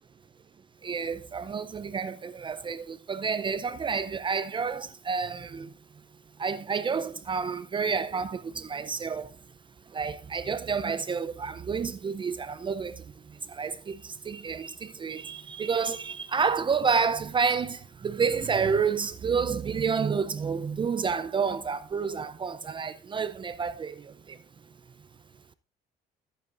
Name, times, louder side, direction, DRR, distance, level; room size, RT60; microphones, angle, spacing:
voice 1, 0.8-5.7 6.4-9.4 9.9-24.4, right 5 dB, 30° right, 0.5 m, -29 dB
13.5 x 8.9 x 2.5 m
cardioid pair, 110°, 17 cm